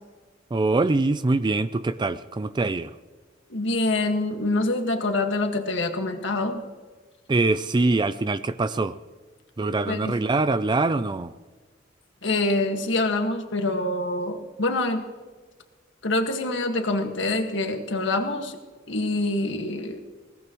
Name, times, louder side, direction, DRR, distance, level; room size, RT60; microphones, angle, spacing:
voice 1, 0.5-2.9 7.3-9.0 9.6-11.3, right 3 dB, 25° right, 0.4 m, -23 dB
voice 2, 3.5-6.6 9.9-10.1 12.2-15.0 16.0-18.6 18.9-20.0, left 2 dB, 65° left, 1.7 m, -25 dB
21.0 x 19.0 x 3.1 m
head